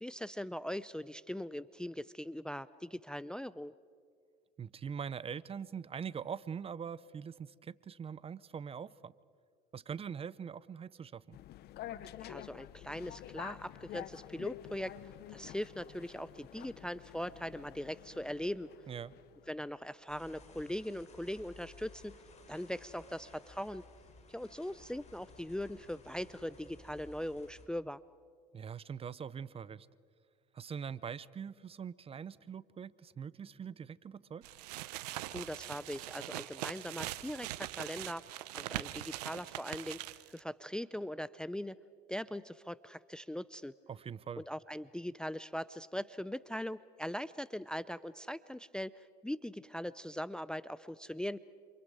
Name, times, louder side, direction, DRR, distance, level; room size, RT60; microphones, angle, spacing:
voice 1, 0.0-3.7 12.2-18.7 19.5-22.2 22.5-23.9 24.3-28.0 35.3-38.2 38.5-41.8 42.1-43.7 44.4-51.4, equal, 5° left, 18 dB, 0.5 m, -40 dB
voice 2, 4.6-9.1 9.7-11.4 18.9-19.1 28.5-29.9 30.5-34.5 43.9-44.4, right 7 dB, 30° right, 20 dB, 0.7 m, -43 dB
sound 1, 11.3-19.6, left 13 dB, 55° left, 0.9 m, -49 dB
sound 2, 20.1-27.7, left 3 dB, 35° left, 4.6 m, -57 dB
sound 3, 34.4-40.4, right 16 dB, 80° right, 0.8 m, -42 dB
29.0 x 27.5 x 5.0 m, 2.1 s
hypercardioid pair, 80°, 20 cm